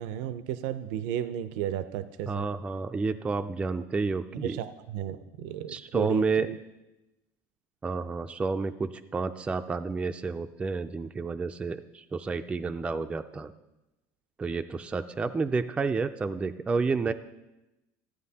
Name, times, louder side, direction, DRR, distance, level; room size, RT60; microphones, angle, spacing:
voice 1, 0.0-2.5 4.3-6.6, right 10 dB, 75° right, 12 dB, 0.5 m, -34 dB
voice 2, 2.3-4.6 5.7-6.5 7.8-13.5 14.4-17.1, right 4 dB, 15° right, 8 dB, 0.3 m, -30 dB
15.0 x 9.4 x 2.8 m, 0.98 s
cardioid pair, 135°, 8 cm